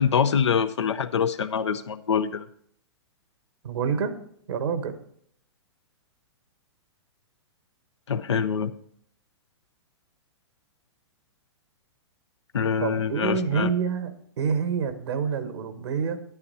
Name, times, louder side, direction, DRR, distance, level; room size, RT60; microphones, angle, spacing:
voice 1, 0.0-2.5 8.1-8.7 12.5-13.7, left 7 dB, 85° left, 10 dB, 0.6 m, -25 dB
voice 2, 3.6-4.1 4.5-5.0 12.8-16.2, right 6 dB, 75° right, 9 dB, 1.3 m, -27 dB
9.7 x 9.6 x 4.1 m, 0.66 s
hypercardioid pair, 120°, 14 cm